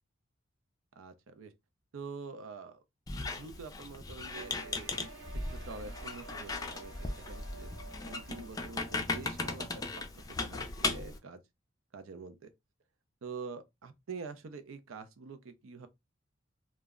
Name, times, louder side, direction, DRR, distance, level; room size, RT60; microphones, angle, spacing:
voice 1, 1.0-1.5 1.9-2.8 3.1-5.1 5.5-11.4 11.9-12.5 13.2-15.9, right 4 dB, 85° right, 0.5 m, -46 dB
Squeak, 3.1-11.2, left 3 dB, 20° left, 0.3 m, -37 dB
sound 1, 4.3-9.5, right 3 dB, 60° right, 0.9 m, -52 dB
2.2 x 2.0 x 3.5 m
head